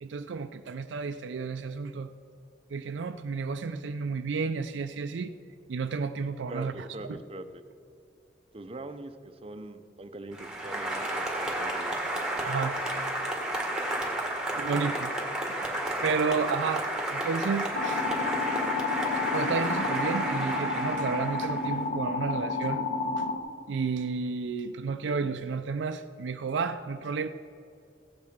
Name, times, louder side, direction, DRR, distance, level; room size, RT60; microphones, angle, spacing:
voice 1, 0.0-2.1 2.7-5.3 5.7-7.2 12.4-12.8 14.6-18.1 19.3-22.9 23.2-23.3 23.7-27.3, right 5 dB, 80° right, 8 dB, 0.4 m, -32 dB
voice 2, 6.5-7.5 8.5-12.0 14.4-14.8, right 2 dB, 30° right, 9 dB, 0.6 m, -43 dB
Applause, 10.3-21.8, right 1 dB, 5° right, 1.7 m, -32 dB
sound 1, 17.7-23.4, left 3 dB, 50° left, 1.1 m, -31 dB
15.5 x 8.5 x 5.2 m, 2.6 s
head